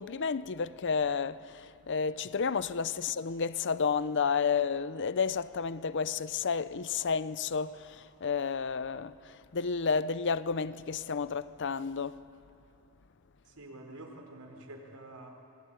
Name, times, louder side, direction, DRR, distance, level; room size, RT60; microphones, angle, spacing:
voice 1, 0.0-12.2, left 5 dB, 55° left, 0.6 m, -31 dB
voice 2, 13.5-15.3, right 1 dB, 85° right, 4.4 m, -47 dB
27.0 x 21.0 x 9.1 m
head